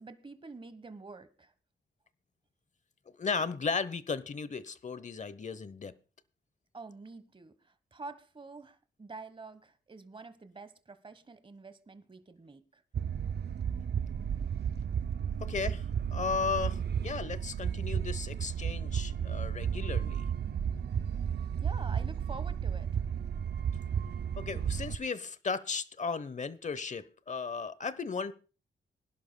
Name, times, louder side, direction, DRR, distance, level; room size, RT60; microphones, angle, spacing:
voice 1, 0.0-1.5 6.7-12.8 21.6-23.1, right 3 dB, 25° right, 1.2 m, -47 dB
voice 2, 3.1-5.9 15.4-15.9 16.1-20.2 24.4-28.3, left 5 dB, 40° left, 0.9 m, -35 dB
sound 1, 12.9-25.0, right 8 dB, 60° right, 0.6 m, -33 dB
25.0 x 11.0 x 2.2 m
cardioid pair, 95°, 19 cm